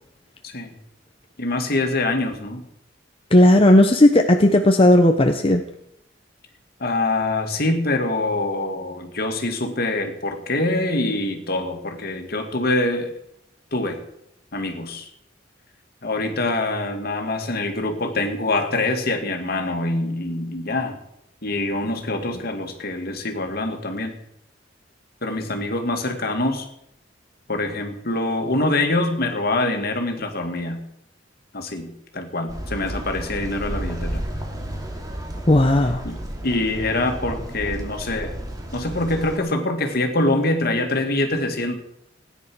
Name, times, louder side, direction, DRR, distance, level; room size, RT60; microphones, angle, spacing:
voice 1, 0.4-0.8 1.4-2.6 6.8-13.1 13.7-14.0 14.5-15.1 16.0-21.0 21.4-24.2 25.2-26.7 27.5-30.8 31.5-34.2 36.0-38.4 38.7-41.8, left 2 dB, 55° left, 5 dB, 2.2 m, -24 dB
voice 2, 3.3-5.6 35.5-36.0, left 1 dB, 30° left, 4 dB, 0.9 m, -14 dB
sound 1, 32.5-39.4, right 1 dB, 20° right, 2.6 m, -32 dB
16.5 x 10.0 x 6.2 m, 0.78 s
head